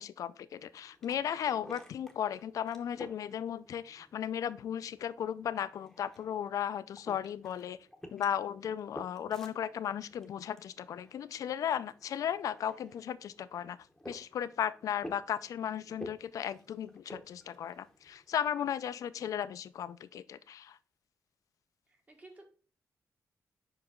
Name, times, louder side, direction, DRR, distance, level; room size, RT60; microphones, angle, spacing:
voice 1, 0.0-7.8 8.1-13.8 14.1-20.8, left 9 dB, 70° left, 15 dB, 0.4 m, -35 dB
sound 1, 0.5-18.4, left 1 dB, 5° left, 0.8 m, -53 dB
voice 2, 21.9-22.4, right 2 dB, 25° right, 3 dB, 1.3 m, -54 dB
5.3 x 4.8 x 3.7 m, 0.38 s
wide cardioid pair, 150°, 6 cm